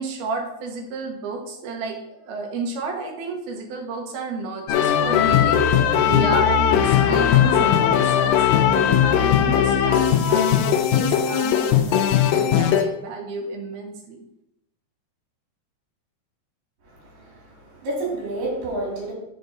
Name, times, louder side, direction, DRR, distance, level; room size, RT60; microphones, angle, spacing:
voice 1, 0.0-14.3, right 3 dB, 75° right, 1 dB, 3.2 m, -32 dB
sound 1, 4.7-12.8, left 9 dB, 80° left, 2.2 m, -18 dB
voice 2, 16.9-19.1, right 2 dB, 60° right, -4 dB, 4.8 m, -30 dB
6.9 x 6.7 x 5.4 m, 0.85 s
omnidirectional pair, 4.6 m